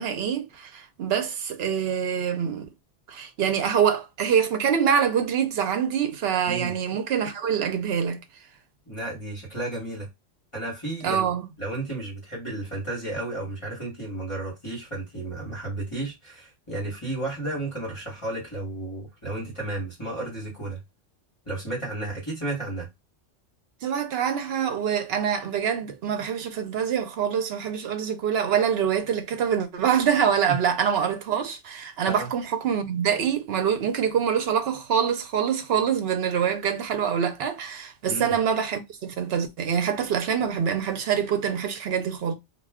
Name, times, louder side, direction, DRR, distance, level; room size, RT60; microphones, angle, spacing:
voice 1, 0.0-2.7 3.1-8.2 11.0-11.5 23.8-42.3, right 8 dB, 65° right, 0.8 m, -25 dB
voice 2, 8.9-10.1 10.5-11.3 11.6-20.8 21.4-22.9 30.5-30.6 32.0-32.3 38.1-38.3, right 2 dB, 25° left, 1.3 m, -33 dB
2.3 x 2.3 x 3.4 m
omnidirectional pair, 1.2 m